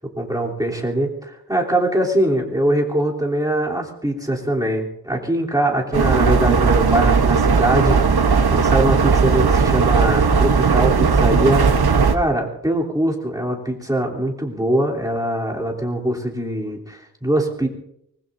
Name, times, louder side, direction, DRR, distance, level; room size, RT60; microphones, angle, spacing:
voice 1, 0.2-11.7 12.1-17.7, right 1 dB, 10° right, -2 dB, 3.3 m, -22 dB
sound 1, 5.9-12.2, right 5 dB, 85° right, 1.0 m, -16 dB
24.5 x 20.5 x 2.7 m, 0.76 s
wide cardioid pair, 65°, 37 cm